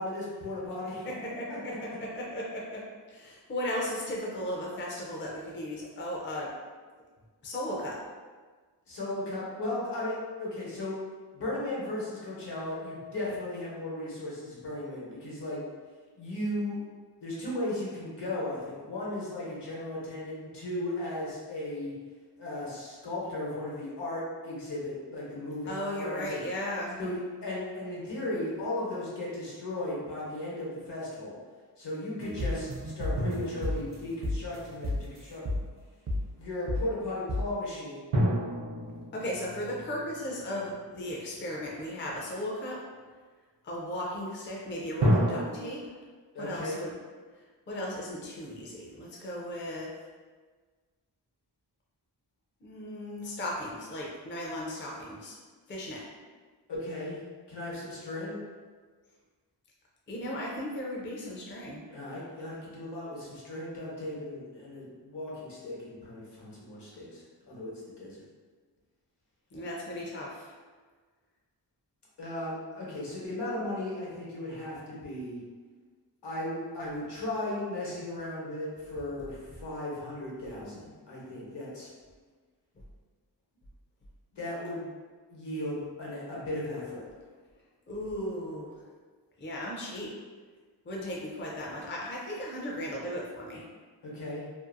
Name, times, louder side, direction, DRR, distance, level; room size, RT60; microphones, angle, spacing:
voice 1, 0.0-1.1 1.5-2.0 8.9-11.0 11.3-15.6 16.2-16.8 17.2-21.9 22.4-26.5 27.0-31.4 31.8-35.4 36.4-38.0 46.3-46.8 56.7-57.2 57.5-58.4 61.9-68.3 72.2-75.4 76.2-81.9 84.3-84.9 85.3-87.0 94.0-94.4, left 1 dB, 70° left, -6 dB, 1.0 m, -36 dB
voice 2, 1.0-6.6 7.4-8.0 25.7-27.0 39.1-42.8 43.6-45.8 46.4-46.9 47.7-49.9 52.6-55.4 55.7-56.0 60.1-61.9 69.5-70.5 87.9-88.7 89.4-90.1 90.9-93.7, left 1 dB, 30° left, -3 dB, 0.4 m, -36 dB
sound 1, 32.2-34.0 34.2-34.6 34.8-35.2 35.5-35.8 36.1-36.4 36.7-37.0 37.3-37.6, left 1 dB, 40° right, 0.4 m, -33 dB
sound 2, 33.2-35.1 38.1-41.4 45.0-45.5, equal, 90° right, 0.6 m, -30 dB
2.6 x 2.3 x 2.5 m, 1.4 s
wide cardioid pair, 110°, 43 cm